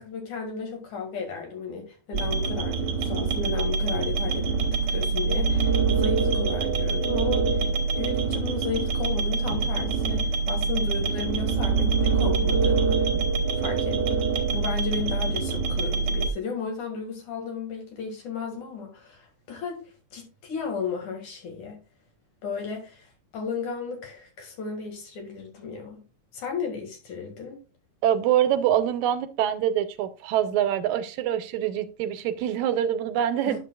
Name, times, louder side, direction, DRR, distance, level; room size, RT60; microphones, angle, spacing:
voice 1, 0.0-7.7 8.0-13.1 13.6-21.8 22.4-23.1 23.3-26.0 26.3-27.6 33.5-33.6, left 5 dB, 85° left, 3.5 m, -34 dB
sound 1, 2.1-16.3, right 5 dB, 60° right, 1.2 m, -25 dB
voice 2, 28.0-33.6, right 10 dB, 85° right, 2.1 m, -25 dB
10.5 x 6.8 x 2.4 m
omnidirectional pair, 3.3 m